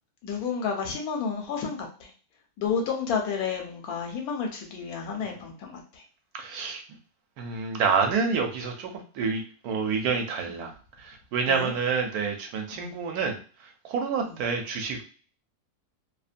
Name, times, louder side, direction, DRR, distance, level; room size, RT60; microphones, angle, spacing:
voice 1, 0.2-2.1 2.6-6.0 10.5-10.7 11.5-11.7 12.7-13.0 14.2-14.4, left 6 dB, 75° left, 2 dB, 1.1 m, -31 dB
voice 2, 6.3-6.8 7.4-10.7 11.0-13.4 13.9-15.0, right 5 dB, 75° right, 4 dB, 1.1 m, -28 dB
2.7 x 2.1 x 2.5 m, 0.39 s
omnidirectional pair, 1.7 m